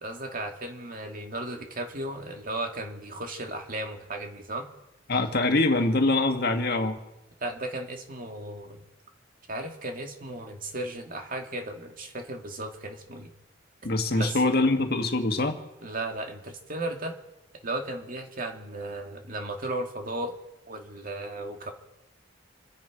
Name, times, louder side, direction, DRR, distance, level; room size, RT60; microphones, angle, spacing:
voice 1, 0.0-4.7 7.4-8.8 9.5-13.3 14.1-14.4 15.8-17.1 17.6-20.4 20.7-21.7, right 2 dB, 45° right, 3 dB, 2.2 m, -35 dB
voice 2, 5.1-7.0 13.8-15.6, left 2 dB, 55° left, 5 dB, 1.7 m, -24 dB
28.0 x 9.7 x 5.1 m, 0.92 s
head